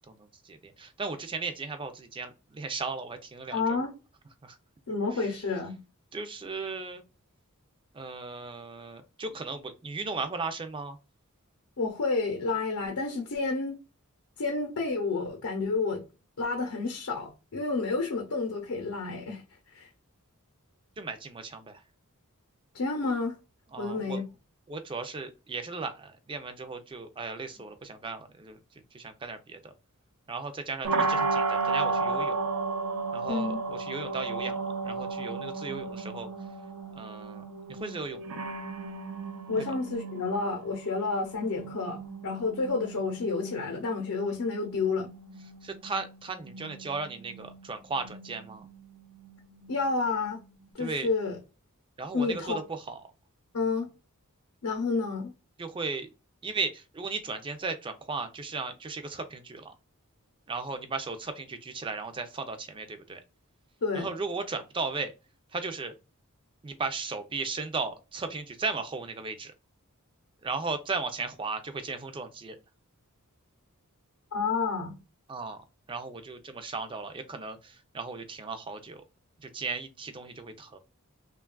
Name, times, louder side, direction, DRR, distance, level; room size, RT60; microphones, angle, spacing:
voice 1, 0.4-3.8 4.4-4.6 6.1-7.0 7.9-11.0 21.0-21.8 23.7-24.2 24.7-28.6 28.9-29.7 30.3-32.4 33.1-34.6 34.8-36.3 37.0-38.2 39.6-39.7 45.6-48.7 50.8-51.1 52.0-53.0 55.6-56.1 56.4-59.7 60.5-63.2 63.9-65.1 65.5-65.9 66.6-69.5 70.4-72.6 75.3-75.6 75.9-79.0 79.4-80.8, right 4 dB, 20° right, 0.4 m, -36 dB
voice 2, 3.5-3.9 4.9-5.8 11.8-13.8 14.4-16.1 16.4-19.4 19.7-19.9 22.7-23.4 23.8-24.2 33.3-33.6 39.5-45.1 49.7-50.4 50.7-51.4 52.1-52.6 53.5-53.9 54.6-55.3 63.8-64.1 74.3-74.9, left 4 dB, 75° left, 0.7 m, -30 dB
sound 1, 30.8-50.7, right 4 dB, 75° right, 0.5 m, -35 dB
3.1 x 2.3 x 2.2 m
head